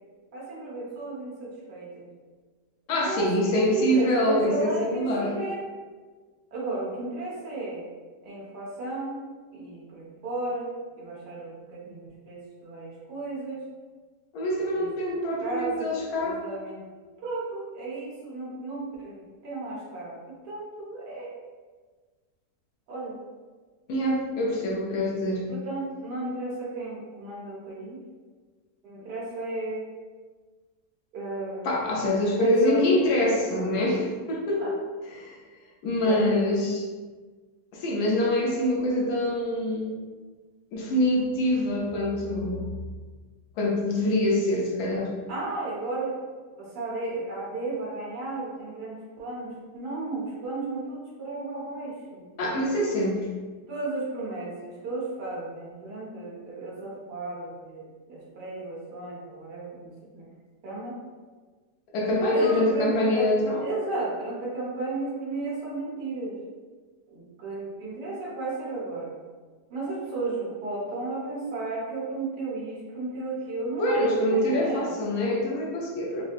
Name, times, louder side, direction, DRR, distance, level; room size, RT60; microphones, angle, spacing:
voice 1, 0.3-2.1 2.9-5.6 6.5-7.8 8.2-9.2 9.5-10.7 11.0-13.6 14.7-14.9 15.4-15.9 16.2-16.8 17.2-19.2 19.4-20.2 20.4-21.3 22.9-23.2 25.5-28.0 28.8-29.8 31.1-31.7 32.1-32.9 34.6-34.7 36.0-36.2 45.3-46.1 46.5-52.2 53.7-60.3 60.6-60.9 62.3-63.3 63.6-66.4 67.1-69.2 69.7-74.9, right 2 dB, 75° right, -6 dB, 1.6 m, -34 dB
voice 2, 2.9-5.4 14.3-16.4 23.9-25.4 31.6-34.7 35.1-35.4 35.8-36.9 37.7-40.0 40.7-42.7 43.6-45.1 52.4-53.3 61.9-63.6 73.8-76.2, left 1 dB, 75° left, -2 dB, 1.3 m, -25 dB
4.2 x 2.7 x 2.5 m, 1.4 s
omnidirectional pair, 1.8 m